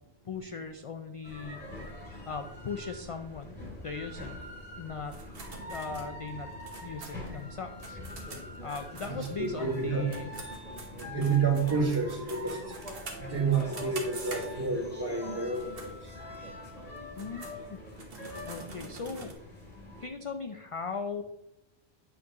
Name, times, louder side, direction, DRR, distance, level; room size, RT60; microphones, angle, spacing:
voice 1, 0.3-1.6 2.3-4.3 4.8-5.2 5.7-6.5 6.8-8.0 8.6-10.3 11.1-11.4 17.2-17.8 18.5-19.3 20.0-21.2, left 5 dB, 50° left, 6 dB, 0.4 m, -38 dB
sound 1, 1.2-20.1, left 1 dB, 10° left, 2.4 m, -43 dB
sound 2, 5.1-9.8 10.1-14.9 15.4-15.9 16.3-16.4 17.0-19.3, right 3 dB, 65° right, 1.4 m, -46 dB
voice 2, 9.0-10.0 11.0-12.6 13.2-15.9, right 5 dB, 20° right, -4 dB, 1.9 m, -29 dB
8.6 x 6.0 x 2.9 m, 0.89 s
omnidirectional pair, 1.1 m